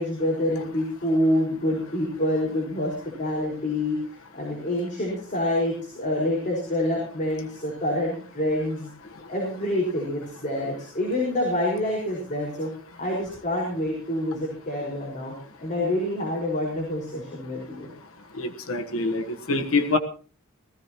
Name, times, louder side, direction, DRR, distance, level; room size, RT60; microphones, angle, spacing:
voice 1, 0.0-4.0 4.3-8.9 9.3-12.7 13.0-15.3 15.6-17.9, left 1 dB, 35° left, -3 dB, 5.2 m, -27 dB
voice 2, 18.4-20.0, left 3 dB, 70° left, 5 dB, 1.3 m, -25 dB
19.0 x 15.5 x 3.0 m, 0.41 s
head